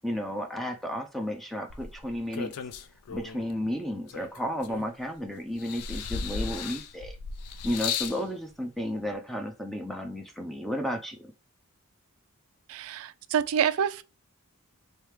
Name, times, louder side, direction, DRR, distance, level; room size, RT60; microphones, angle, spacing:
voice 1, 0.0-2.5 3.1-7.2 7.6-11.3, equal, ahead, 0.4 m, -33 dB
sound 1, 1.7-3.5 4.1-5.2 5.6-8.2 9.1-9.2, left 6 dB, 80° left, 0.4 m, -35 dB
voice 2, 12.7-14.0, right 8 dB, 65° right, 0.3 m, -27 dB
3.3 x 3.2 x 3.1 m
head